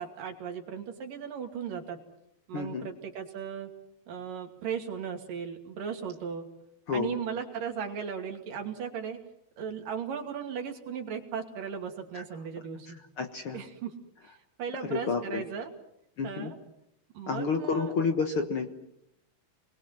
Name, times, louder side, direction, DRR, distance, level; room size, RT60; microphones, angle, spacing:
voice 1, 0.0-2.0 2.5-3.7 4.1-6.5 6.9-9.2 9.6-13.0 13.5-13.9 14.2-15.7 16.2-16.6 17.1-17.9, right 7 dB, 75° right, 3 dB, 4.2 m, -37 dB
voice 2, 2.5-2.9 6.9-7.2 12.1-12.2 13.2-13.6 14.8-15.4 16.2-16.5 17.3-18.7, left 5 dB, 50° left, 5 dB, 1.8 m, -30 dB
29.5 x 21.5 x 7.6 m, 0.80 s
omnidirectional pair, 4.0 m